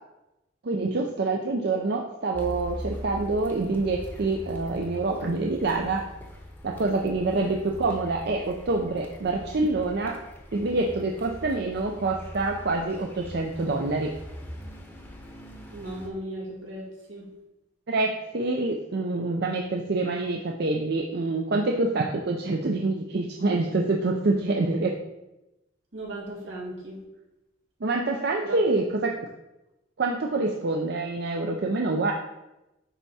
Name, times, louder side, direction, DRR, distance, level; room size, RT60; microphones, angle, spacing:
voice 1, 0.6-6.1 6.6-10.2 10.5-14.1 17.9-24.9 27.8-29.2 30.0-32.1, right 3 dB, 55° right, 1 dB, 0.5 m, -26 dB
Car, 2.3-16.1, equal, 10° left, 0.8 m, -42 dB
voice 2, 15.7-17.3 25.9-27.0 28.4-28.8, right 1 dB, 80° right, -4 dB, 2.2 m, -37 dB
9.8 x 3.5 x 4.2 m, 0.95 s
head